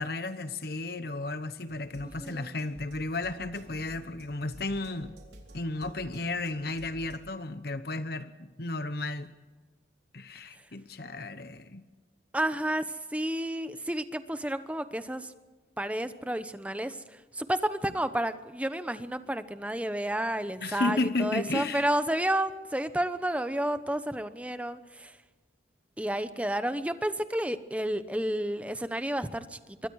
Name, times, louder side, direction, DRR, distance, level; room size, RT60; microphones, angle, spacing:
voice 1, 0.0-5.2 5.5-9.3 10.1-11.8 20.6-21.9, left 2 dB, 55° left, 1.0 m, -33 dB
sound 1, 1.7-7.2, right 1 dB, 65° right, 4.0 m, -51 dB
voice 2, 2.0-2.5 12.3-15.3 15.8-25.2 26.0-29.9, right 1 dB, 5° right, 0.9 m, -31 dB
25.5 x 23.0 x 4.8 m
head